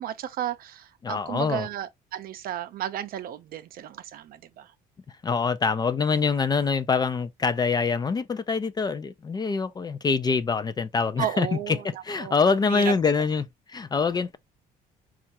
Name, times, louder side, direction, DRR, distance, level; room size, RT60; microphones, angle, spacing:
voice 1, 0.0-4.7 11.2-12.9, right 11 dB, 60° right, 0.5 m, -33 dB
voice 2, 1.0-1.7 5.2-13.4 13.7-14.4, left 5 dB, 25° left, 0.4 m, -25 dB
4.3 x 2.4 x 2.7 m
cardioid pair, 110°, 17 cm